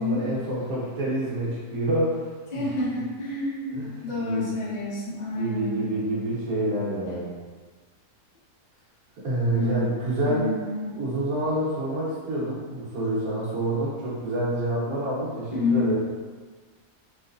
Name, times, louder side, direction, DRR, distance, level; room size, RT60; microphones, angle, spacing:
voice 1, 0.0-2.2 2.5-2.6 3.7-4.6 5.3-7.3 9.2-10.5 11.0-16.0, right 1 dB, 65° right, -7 dB, 1.3 m, -27 dB
voice 2, 2.5-5.9 9.5-9.7 10.2-11.0 15.6-15.9, left 2 dB, 40° left, -7 dB, 0.6 m, -28 dB
3.1 x 2.9 x 2.4 m, 1.4 s
omnidirectional pair, 1.6 m